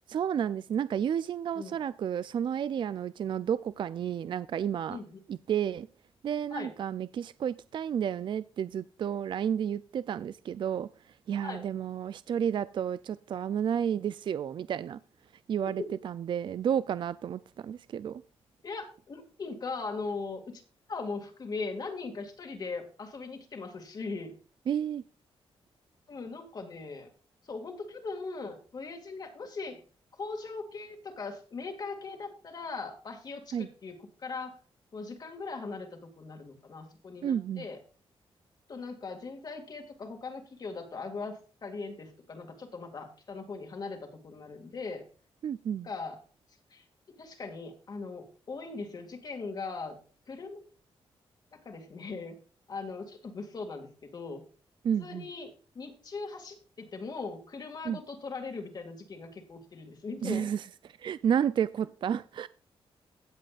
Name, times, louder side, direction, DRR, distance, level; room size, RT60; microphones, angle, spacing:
voice 1, 0.1-5.0 5.3-5.9 6.2-15.0 15.5-18.2 24.7-25.0 33.5-33.7 37.2-37.7 45.4-45.9 54.8-55.3 57.8-58.0 60.2-60.7 61.0-62.5, right 8 dB, 55° right, 16 dB, 0.4 m, -31 dB
voice 2, 4.9-5.2 6.5-6.7 11.4-11.7 15.6-15.9 18.6-20.6 20.9-24.3 26.1-27.1 27.4-29.8 30.1-34.6 34.9-37.8 38.7-45.0 45.8-46.2 46.7-46.8 47.2-50.0 50.3-50.7 51.5-52.4 52.7-54.4 55.0-60.5, left 4 dB, 40° left, 4 dB, 2.2 m, -39 dB
17.5 x 7.6 x 2.5 m, 0.39 s
wide cardioid pair, 155°, 10 cm